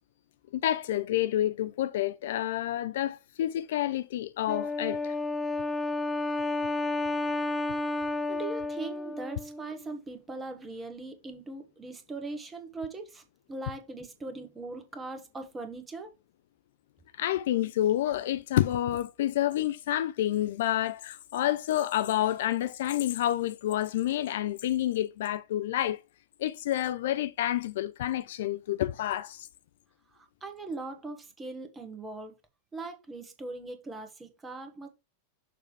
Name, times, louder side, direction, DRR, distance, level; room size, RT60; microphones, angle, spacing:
voice 1, 0.5-5.1 17.2-26.0 26.4-29.5, left 13 dB, 55° left, 0.3 m, -29 dB
Wind instrument woodwind instrument, 4.5-9.9, left 2 dB, 10° left, 0.7 m, -31 dB
voice 2, 8.3-13.2 13.5-16.1 30.1-32.4 32.7-34.9, right 3 dB, 15° right, 1.4 m, -40 dB
6.7 x 3.2 x 4.9 m
figure-of-eight pair, 90°, 0 cm